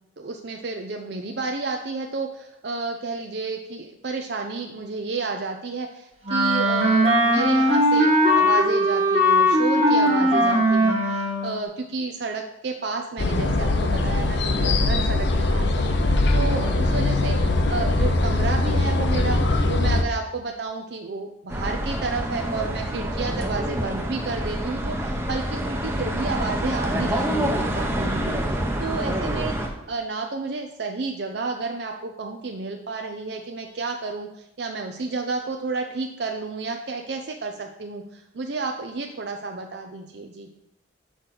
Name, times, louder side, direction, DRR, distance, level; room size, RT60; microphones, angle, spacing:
voice 1, 0.2-17.4 17.7-19.4 19.7-29.5 29.9-40.5, right 3 dB, 60° right, 3 dB, 0.6 m, -31 dB
Wind instrument woodwind instrument, 6.3-11.5, equal, 30° right, 1.4 m, -19 dB
sound 1, 13.2-20.0, left 2 dB, 65° left, 0.7 m, -21 dB
sound 2, 21.5-29.7, right 1 dB, 15° right, 0.8 m, -27 dB
6.4 x 4.8 x 6.0 m, 0.86 s
head